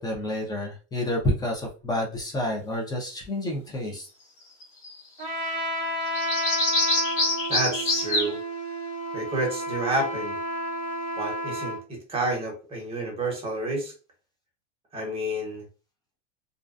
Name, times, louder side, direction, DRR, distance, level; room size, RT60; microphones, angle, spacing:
voice 1, 0.0-4.1, left 1 dB, 10° left, 0 dB, 0.4 m, -29 dB
sound 1, 4.6-4.9 5.2-5.3 6.1-8.3, left 2 dB, 35° left, 1.0 m, -25 dB
Trumpet, 5.2-11.8, equal, 55° right, 0.9 m, -31 dB
voice 2, 7.5-8.4 9.1-10.4 11.2-13.9 14.9-15.7, right 2 dB, 15° right, -1 dB, 1.0 m, -29 dB
2.4 x 2.2 x 2.4 m, 0.35 s
supercardioid pair, 130°, 37 cm